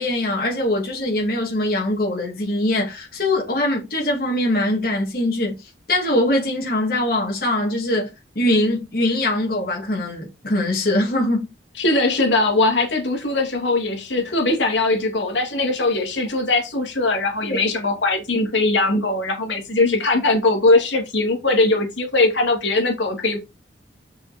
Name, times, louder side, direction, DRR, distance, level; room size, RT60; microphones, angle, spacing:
voice 1, 0.0-5.6 5.9-8.1 8.3-11.5 17.5-17.6, left 1 dB, 50° left, 2.6 m, -22 dB
voice 2, 11.8-23.4, left 2 dB, 85° left, 2.6 m, -20 dB
6.6 x 5.8 x 4.3 m
head